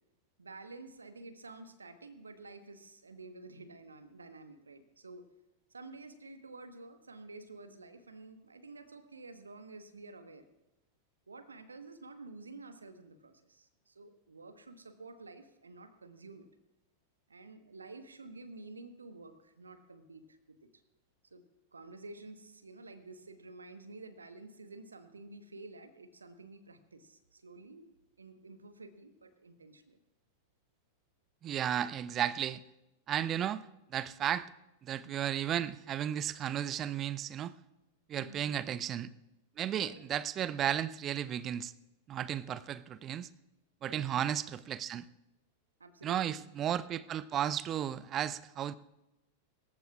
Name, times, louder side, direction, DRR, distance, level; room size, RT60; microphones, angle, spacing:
voice 1, 0.4-5.3 5.7-10.5 11.3-16.4 17.3-20.8 21.3-21.4 21.7-30.0 38.1-38.7 39.7-40.3 43.9-44.1 45.8-46.4, right 3 dB, 75° right, 10 dB, 1.2 m, -51 dB
voice 2, 31.4-32.6 33.1-33.6 33.9-34.5 34.8-37.5 38.1-39.1 39.6-41.7 42.1-43.3 43.8-45.0 46.0-48.7, right 10 dB, 30° right, 19 dB, 0.5 m, -34 dB
24.5 x 15.0 x 2.4 m, 0.95 s
figure-of-eight pair, 90°, 0 cm